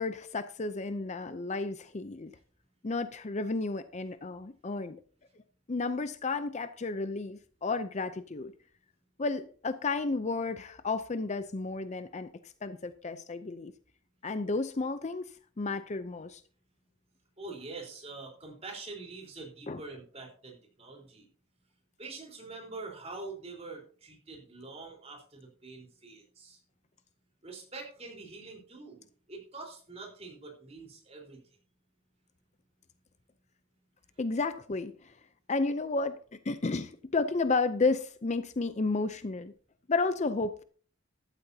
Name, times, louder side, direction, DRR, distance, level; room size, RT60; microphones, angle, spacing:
voice 1, 0.0-2.3 2.8-5.0 5.7-8.5 9.2-13.7 14.2-15.3 15.6-16.4 19.7-19.8 34.2-35.1 35.5-36.2 36.4-39.5 39.9-40.6, left 3 dB, 35° left, 11 dB, 0.5 m, -32 dB
voice 2, 17.4-21.2 22.0-26.6 27.4-31.4, right 3 dB, 30° right, 0 dB, 4.1 m, -45 dB
14.0 x 12.0 x 2.8 m, 0.44 s
head